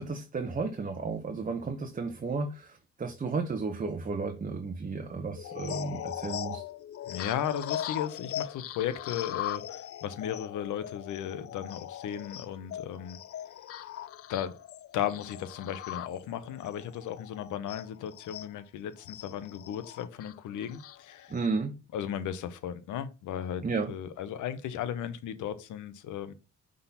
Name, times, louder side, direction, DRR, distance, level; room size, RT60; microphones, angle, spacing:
voice 1, 0.0-6.6 21.3-21.8 23.6-23.9, right 4 dB, 25° right, 0.9 m, -33 dB
sound 1, 5.3-18.5 19.0-21.5, left 11 dB, 50° left, 0.5 m, -40 dB
voice 2, 7.1-13.2 14.3-14.5 14.9-21.3 21.9-23.6 23.9-26.3, left 9 dB, 80° left, 0.8 m, -35 dB
5.8 x 3.8 x 5.6 m
cardioid pair, 90°, 30 cm